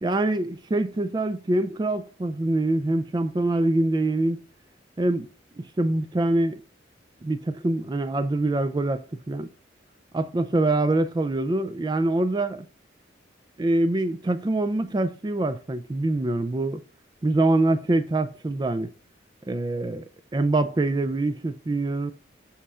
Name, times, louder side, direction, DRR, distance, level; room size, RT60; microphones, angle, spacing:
voice 1, 0.0-4.4 5.0-5.3 5.6-6.6 7.2-9.5 10.1-12.7 13.6-16.8 17.2-18.9 19.5-22.1, right 2 dB, 20° right, 0.3 m, -24 dB
12.5 x 4.3 x 2.4 m
head